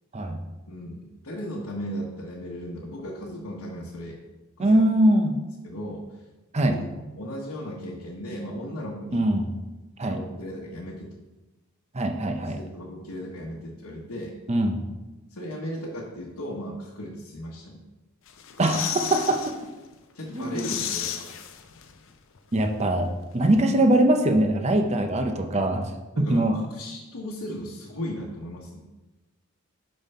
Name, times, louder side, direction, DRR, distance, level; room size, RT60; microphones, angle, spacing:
voice 1, 0.7-4.2 4.6-4.8 5.6-6.0 6.6-6.8 7.2-9.2 10.1-11.1 12.4-14.3 15.3-17.8 20.1-21.3 23.4-23.6 25.5-25.6 26.1-28.8, equal, 85° left, -4 dB, 1.1 m, -36 dB
voice 2, 4.6-5.4 6.5-6.8 9.1-9.5 10.0-10.2 11.9-12.6 14.5-14.8 18.6-19.6 20.3-20.7 22.5-25.8 26.2-26.6, right 1 dB, 30° right, 5 dB, 0.6 m, -22 dB
sound 1, 18.3-19.6 19.9-20.0 20.3-22.1 22.4-22.5, left 9 dB, 60° left, 0.6 m, -33 dB
5.5 x 5.3 x 5.5 m, 1.1 s
head